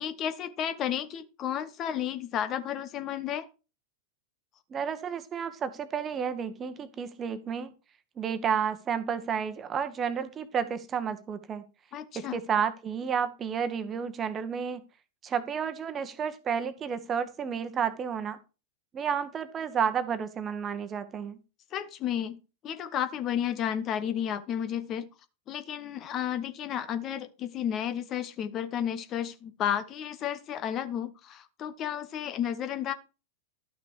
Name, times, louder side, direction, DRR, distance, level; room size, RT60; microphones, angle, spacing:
voice 1, 0.0-3.5 11.9-12.4 21.7-25.1 25.5-32.9, left 9 dB, 30° left, 11 dB, 1.0 m, -32 dB
voice 2, 4.7-7.7 8.2-11.6 12.1-14.8 15.2-18.4 18.9-21.4, right 7 dB, 25° right, 12 dB, 1.2 m, -31 dB
12.5 x 6.2 x 4.7 m, 0.30 s
figure-of-eight pair, 90°, 0 cm